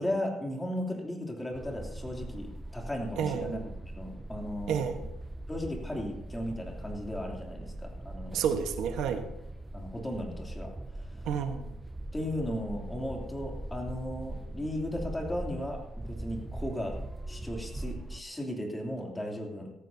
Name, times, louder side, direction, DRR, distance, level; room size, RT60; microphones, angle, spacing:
voice 1, 0.0-3.6 4.0-4.9 5.5-8.4 9.7-11.3 12.1-17.0 17.3-19.7, left 1 dB, 10° left, 0 dB, 2.9 m, -36 dB
sound 1, 1.5-18.2, right 1 dB, 10° right, 0.4 m, -41 dB
voice 2, 3.2-3.6 4.7-5.1 8.3-9.3 11.2-11.7, right 7 dB, 85° right, 7 dB, 1.2 m, -30 dB
17.5 x 14.0 x 2.8 m, 0.87 s
cardioid pair, 110°, 0 cm